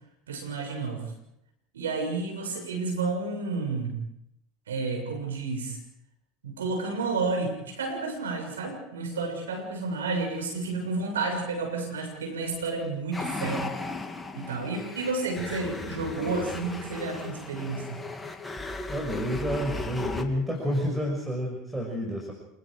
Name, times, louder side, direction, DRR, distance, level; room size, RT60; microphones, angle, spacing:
voice 1, 0.3-1.0 1.7-4.0 4.7-5.8 6.4-13.7 14.3-18.0, right 3 dB, 90° right, 3 dB, 7.0 m, -31 dB
sound 1, 13.1-20.2, left 3 dB, 10° left, 2.9 m, -36 dB
voice 2, 18.9-22.3, equal, 10° right, 0 dB, 6.5 m, -29 dB
28.0 x 21.0 x 5.1 m, 0.80 s
hypercardioid pair, 80°, 0 cm